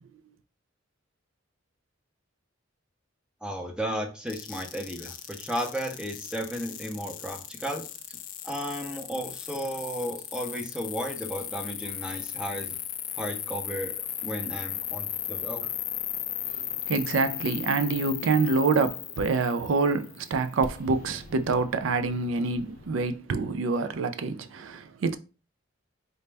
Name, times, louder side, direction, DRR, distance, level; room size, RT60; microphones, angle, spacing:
voice 1, 3.4-8.2 8.4-12.8 13.2-13.9 14.2-15.7, equal, 5° right, 0.6 m, -34 dB
sound 1, 4.3-23.2, left 12 dB, 45° left, 0.3 m, -37 dB
voice 2, 16.9-25.2, right 4 dB, 70° right, 0.4 m, -26 dB
3.9 x 2.1 x 3.3 m
head